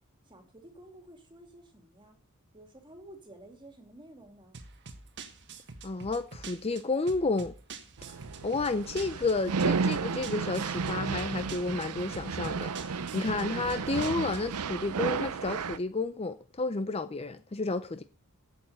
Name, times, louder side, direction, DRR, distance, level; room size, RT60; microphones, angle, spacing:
voice 1, 0.2-2.2 2.5-4.6, right 1 dB, 20° right, 2.5 m, -52 dB
sound 1, 4.5-14.6, right 4 dB, 55° right, 1.4 m, -47 dB
voice 2, 5.8-7.5 8.4-18.0, left 3 dB, 25° left, 0.6 m, -31 dB
sound 2, 8.0-15.8, right 5 dB, 90° right, 0.6 m, -33 dB
8.8 x 8.0 x 8.0 m
head